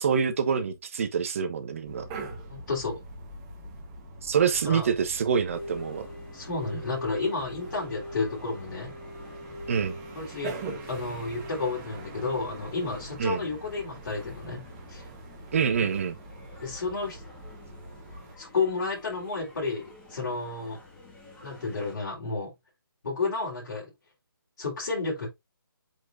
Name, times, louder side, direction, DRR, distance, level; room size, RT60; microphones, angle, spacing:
voice 1, 0.0-2.0 4.2-6.1 9.7-10.0 13.2-13.4 15.5-16.1, right 6 dB, 35° right, 1.1 m, -26 dB
sound 1, 1.8-18.4, right 3 dB, 15° right, 1.2 m, -44 dB
voice 2, 2.5-3.0 4.6-4.9 6.3-8.9 10.1-10.5 10.9-14.6 14.9-15.1 16.6-17.2 18.4-20.8 21.4-22.5 23.0-23.9 24.6-25.3, left 3 dB, 50° left, 3.7 m, -31 dB
sound 2, 5.5-21.9, left 1 dB, 5° left, 1.4 m, -46 dB
7.7 x 4.7 x 2.6 m
hypercardioid pair, 165°, 12 cm